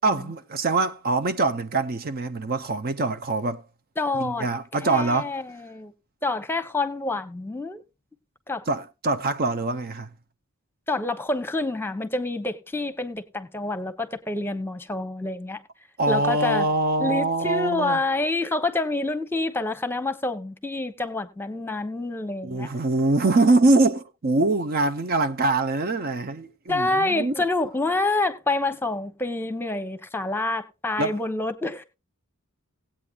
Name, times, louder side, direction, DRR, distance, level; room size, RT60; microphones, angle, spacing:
voice 1, 0.0-3.6 4.2-5.4 8.7-10.1 16.0-18.0 22.4-27.4 31.0-31.2, right 2 dB, 45° right, 0.6 m, -23 dB
voice 2, 4.0-4.5 4.8-5.9 6.2-7.8 8.5-8.6 10.9-15.6 16.1-16.7 17.0-22.7 26.7-31.8, left 2 dB, 10° left, 1.0 m, -27 dB
18.0 x 8.7 x 2.4 m
head